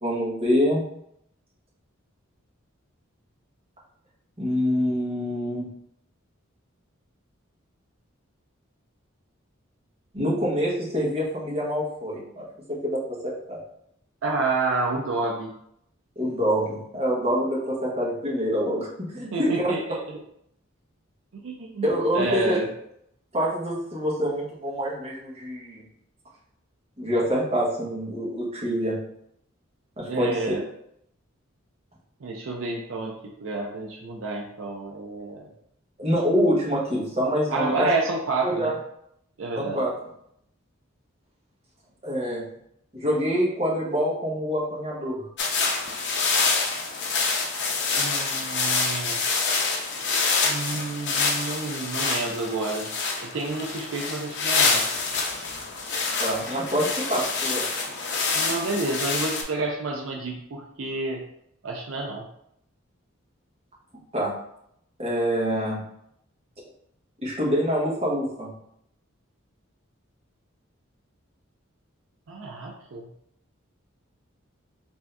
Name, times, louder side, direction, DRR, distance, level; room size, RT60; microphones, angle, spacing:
voice 1, 0.0-0.8 4.4-5.7 10.1-12.4 12.8-13.6 16.2-19.7 21.8-22.6 23.3-25.8 27.0-29.0 30.0-30.5 36.0-37.9 38.4-38.7 39.6-39.9 42.0-42.4 42.9-45.2 56.2-57.6 64.1-64.3 65.0-65.8 67.2-68.5, equal, 30° right, -5 dB, 1.2 m, -26 dB
voice 2, 14.2-15.5 19.3-20.2 21.4-21.9 22.1-22.7 30.1-30.6 32.2-33.1 33.4-35.4 37.5-38.7 39.4-39.8 47.9-49.2 50.4-52.9 53.2-54.9 58.3-61.2 61.6-62.3 72.3-73.1, right 3 dB, 70° right, 0 dB, 0.5 m, -29 dB
sound 1, 45.4-59.4, left 4 dB, 55° left, 0.6 m, -26 dB
3.5 x 2.7 x 3.3 m, 0.74 s
head